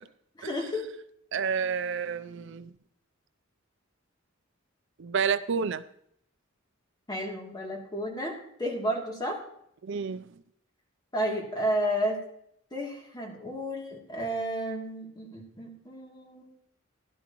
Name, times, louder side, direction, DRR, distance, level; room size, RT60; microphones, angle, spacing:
voice 1, 0.4-0.8 7.1-9.4 11.1-12.2 12.7-16.5, equal, 20° left, -1 dB, 2.7 m, -32 dB
voice 2, 1.3-2.7 5.0-5.8 9.8-10.2, right 6 dB, 65° right, 12 dB, 0.5 m, -29 dB
16.0 x 11.5 x 3.0 m, 0.71 s
head